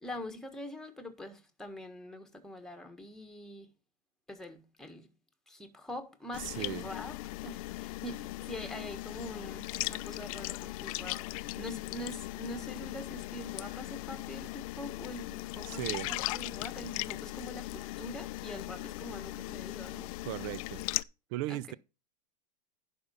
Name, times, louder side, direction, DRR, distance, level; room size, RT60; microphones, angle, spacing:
voice 1, 0.0-3.7 4.3-5.1 5.5-7.2 7.4-20.1 21.5-21.8, left 1 dB, ahead, 1.5 m, -44 dB
sound 1, 6.3-21.0, left 19 dB, 55° left, 0.5 m, -38 dB
voice 2, 6.4-6.8 15.7-16.1 20.2-20.8 21.3-21.7, right 16 dB, 50° right, 0.5 m, -37 dB
11.0 x 5.3 x 5.5 m
hypercardioid pair, 120°, 21 cm